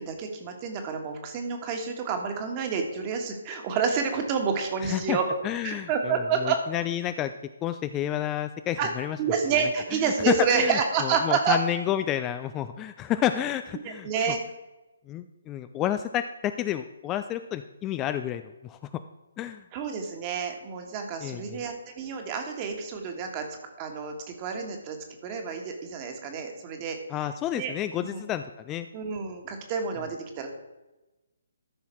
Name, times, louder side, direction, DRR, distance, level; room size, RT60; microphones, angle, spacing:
voice 1, 0.0-5.2 5.6-6.6 8.8-8.9 9.2-11.6 13.8-14.4 19.7-23.4 23.8-25.0 25.2-27.0 27.5-27.7 28.0-28.2 28.9-30.5, right 6 dB, 25° right, 4 dB, 1.6 m, -29 dB
voice 2, 4.8-5.2 5.4-7.3 7.6-9.2 10.3-14.1 15.1-18.8 19.4-19.6 21.2-21.6 27.1-28.9, left 11 dB, 20° left, 10 dB, 0.3 m, -30 dB
13.5 x 5.6 x 4.5 m, 1.1 s
figure-of-eight pair, 140°, 0 cm